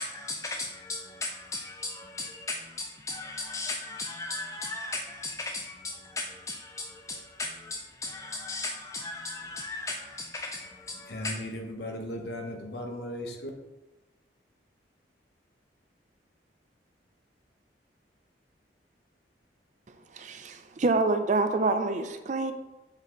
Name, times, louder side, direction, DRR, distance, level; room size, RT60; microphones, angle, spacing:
voice 1, 0.0-11.4, left 2 dB, 15° left, 3 dB, 0.3 m, -37 dB
voice 2, 11.1-13.5, left 1 dB, 65° left, 2 dB, 1.0 m, -36 dB
voice 3, 20.1-22.5, right 3 dB, 40° right, 8 dB, 0.5 m, -27 dB
7.0 x 4.1 x 3.9 m, 1.1 s
head